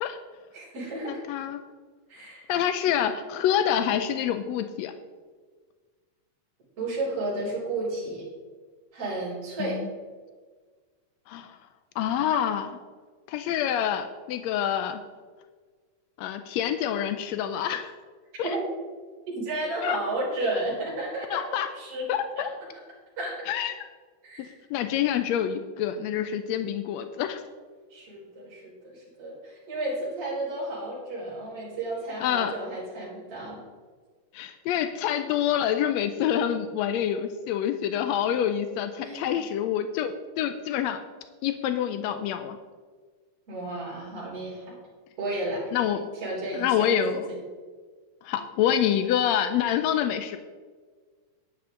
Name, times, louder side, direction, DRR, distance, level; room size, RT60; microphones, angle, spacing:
voice 1, 0.5-1.2 2.1-2.5 6.8-8.3 8.9-9.8 18.4-18.6 19.3-21.4 21.7-22.1 22.4-22.5 23.2-23.4 24.2-24.5 27.9-33.6 39.0-39.5 43.5-44.8 45.2-45.7 46.1-46.9 47.3-47.4, right 2 dB, 50° right, -9 dB, 4.8 m, -32 dB
voice 2, 1.1-1.6 2.5-4.9 9.6-9.9 11.3-11.6 12.0-12.7 13.3-15.0 16.2-17.9 18.4-18.5 19.8-20.0 21.3-21.7 22.1-22.5 23.5-23.7 24.7-27.4 32.2-32.5 34.3-41.0 41.4-42.6 45.7-46.1 46.5-47.3 48.2-50.4, left 9 dB, 85° left, 9 dB, 1.5 m, -27 dB
11.0 x 10.5 x 3.8 m, 1.5 s
omnidirectional pair, 3.6 m